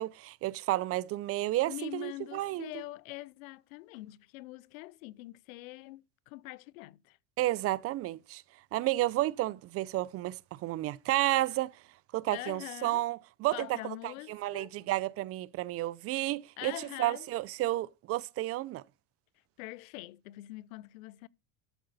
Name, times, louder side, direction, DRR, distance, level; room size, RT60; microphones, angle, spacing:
voice 1, 0.0-2.7 7.4-8.4 8.7-11.7 12.1-16.7 17.0-18.8, right 16 dB, 40° right, 0.4 m, -31 dB
voice 2, 1.7-7.2 12.3-13.0 13.5-14.7 16.6-17.3 19.6-21.3, left 19 dB, 90° left, 0.7 m, -44 dB
12.5 x 7.9 x 4.0 m
supercardioid pair, 125°, 40 cm